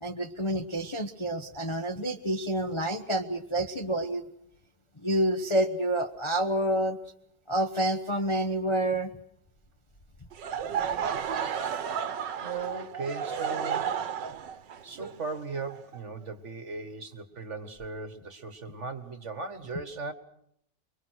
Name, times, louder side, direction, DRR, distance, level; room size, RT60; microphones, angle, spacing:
voice 1, 0.0-4.2 5.0-7.0 7.5-9.1, right 1 dB, 20° left, 4 dB, 0.9 m, -28 dB
Laughter / Crowd, 10.3-16.2, right 7 dB, 80° right, 1.8 m, -32 dB
voice 2, 12.4-14.0 14.8-20.1, right 4 dB, 45° right, 10 dB, 1.7 m, -38 dB
25.0 x 23.0 x 6.4 m, 0.73 s
omnidirectional pair, 1.9 m